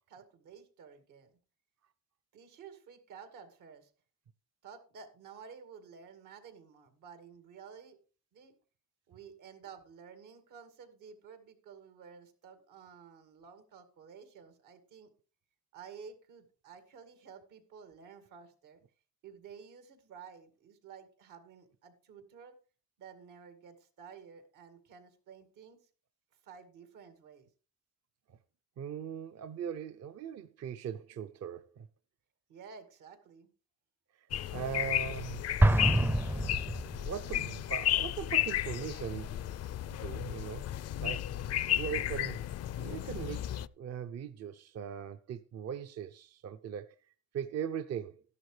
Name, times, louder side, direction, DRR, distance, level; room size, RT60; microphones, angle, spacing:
voice 1, 0.1-1.3 2.3-3.9 4.6-8.0 8.3-8.5 9.1-15.1 15.7-18.8 19.2-22.5 23.0-25.8 26.4-27.5 32.5-33.5, right 6 dB, 85° right, 2.2 m, -52 dB
voice 2, 28.8-31.9 34.1-35.5 36.3-36.8 37.0-39.4 39.9-40.7 41.0-41.3 41.7-42.4 42.8-48.2, right 8 dB, 55° right, 0.6 m, -40 dB
sound 1, 34.3-43.7, left 12 dB, 55° left, 0.5 m, -34 dB
Explosion, 35.6-37.3, right 1 dB, 5° right, 0.4 m, -26 dB
13.0 x 11.0 x 3.3 m
cardioid pair, 90°, 30 cm